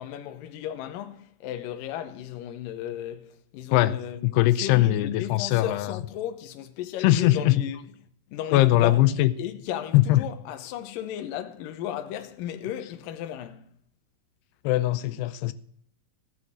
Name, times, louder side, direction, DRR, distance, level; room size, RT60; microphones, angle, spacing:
voice 1, 0.0-7.8 8.3-9.0 9.4-13.7, left 11 dB, 70° left, 2.4 m, -35 dB
voice 2, 4.2-5.9 7.0-7.6 8.5-9.3 9.9-10.2 14.6-15.5, left 15 dB, 90° left, 2.7 m, -21 dB
16.0 x 6.2 x 7.6 m
omnidirectional pair, 4.6 m